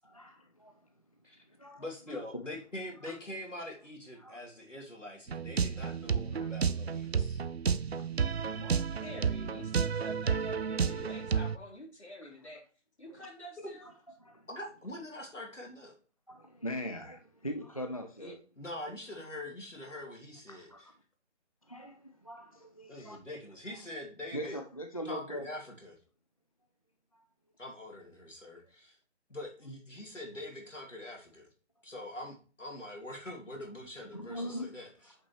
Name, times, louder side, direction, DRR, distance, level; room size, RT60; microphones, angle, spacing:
voice 1, 0.0-0.7 1.6-2.4 3.1-3.2 4.2-4.4 6.4-6.5 8.5-9.0 14.2-14.5 16.3-18.3 20.5-20.8 21.7-23.2 24.3-25.5 34.1-34.7, equal, 30° left, 0.4 m, -41 dB
voice 2, 1.8-7.4 13.6-13.7 14.5-15.9 18.6-20.9 22.9-24.6 25.0-26.0 27.6-29.0 29.3-31.5 31.8-35.2, left 1 dB, 90° left, 2.8 m, -44 dB
sound 1, 5.3-11.6, right 6 dB, 60° right, 0.5 m, -31 dB
voice 3, 9.0-12.6 13.0-13.9 18.2-18.3, equal, 65° left, 3.4 m, -47 dB
8.6 x 5.4 x 3.0 m
figure-of-eight pair, 155°, 36 cm